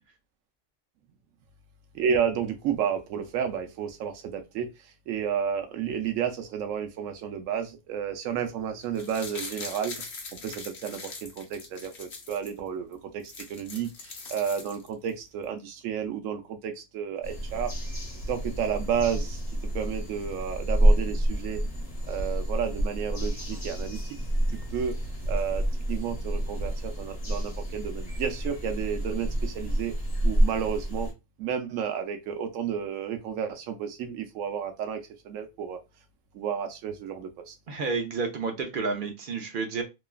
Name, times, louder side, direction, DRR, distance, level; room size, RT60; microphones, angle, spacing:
voice 1, 1.9-4.7 5.1-10.0 10.4-17.7 18.3-19.4 19.7-21.6 22.1-24.0 24.5-24.9 25.3-29.9 30.2-31.1 31.4-35.8 36.3-37.6, right 8 dB, 90° right, 6 dB, 1.0 m, -31 dB
sound 1, 8.8-12.5 12.9-13.0 13.2-15.1 15.4-15.5, left 4 dB, 60° left, 1.0 m, -41 dB
sound 2, 17.2-31.1, right 1 dB, 30° left, 0.9 m, -28 dB
voice 2, 37.7-39.8, right 4 dB, 55° right, 4 dB, 0.6 m, -30 dB
3.0 x 2.3 x 2.3 m, 0.24 s
omnidirectional pair, 1.3 m